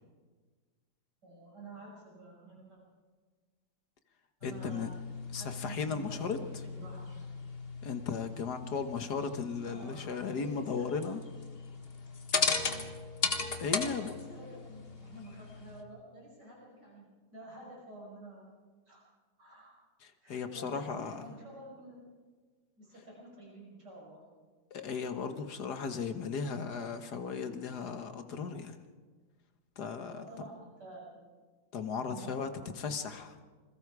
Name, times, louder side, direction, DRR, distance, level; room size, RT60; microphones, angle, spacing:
voice 1, 1.2-2.8 4.4-5.0 5.3-7.3 9.6-11.0 13.7-18.5 18.9-19.0 19.4-19.8 20.2-22.1 22.8-24.3 30.1-31.2 32.1-33.0, right 1 dB, 60° right, -3 dB, 6.4 m, -50 dB
voice 2, 4.4-4.9 5.3-6.4 7.8-11.2 13.6-14.1 20.0-21.2 24.7-28.8 29.8-30.2 31.7-32.5 32.8-33.3, left 5 dB, 60° left, 8 dB, 1.7 m, -36 dB
sound 1, 4.4-15.8, left 4 dB, 35° left, 1.5 m, -37 dB
27.5 x 21.5 x 4.8 m, 1.5 s
omnidirectional pair, 2.0 m